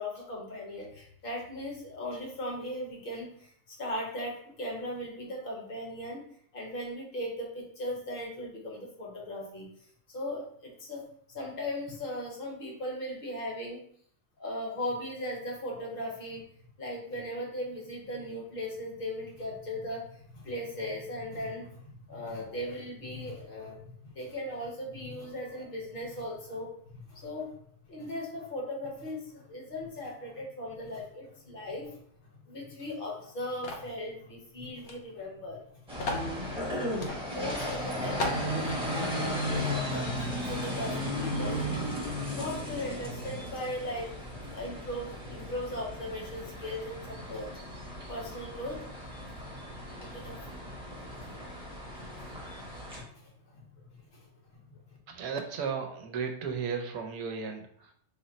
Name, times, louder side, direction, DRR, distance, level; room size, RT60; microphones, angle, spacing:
voice 1, 0.0-6.2 6.5-9.7 10.1-13.8 14.4-16.5 16.8-27.6 27.9-32.0 32.4-35.7 37.2-41.6 42.3-44.2 44.5-47.5 48.1-48.8 50.0-50.6 51.0-51.3 51.9-52.3 52.9-54.3 54.5-54.8, left 1 dB, 40° left, -2 dB, 1.0 m, -38 dB
sound 1, 33.6-33.9 34.8-35.0 35.2-35.3 36.0-36.3 37.0-37.2 37.7-37.8 38.2-38.5, left 2 dB, 55° left, 0.7 m, -33 dB
sound 2, 35.9-53.0, equal, 5° right, 0.8 m, -35 dB
voice 2, 55.1-57.9, right 6 dB, 80° right, 3 dB, 1.1 m, -35 dB
3.6 x 2.1 x 3.9 m, 0.63 s
omnidirectional pair, 1.6 m